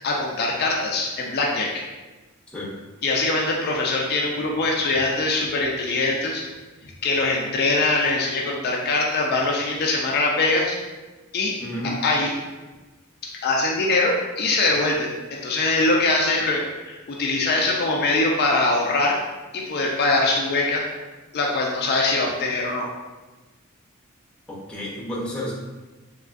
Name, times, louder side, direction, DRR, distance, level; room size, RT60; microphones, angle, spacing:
voice 1, 0.0-1.7 3.0-6.4 6.8-10.8 11.3-11.6 12.0-12.3 13.2-19.2 19.5-20.8 21.3-22.9, left 2 dB, 45° left, -1 dB, 0.4 m, -22 dB
voice 2, 11.6-12.0 24.5-25.5, equal, 5° left, -6 dB, 0.7 m, -31 dB
3.4 x 2.9 x 2.4 m, 1.2 s
head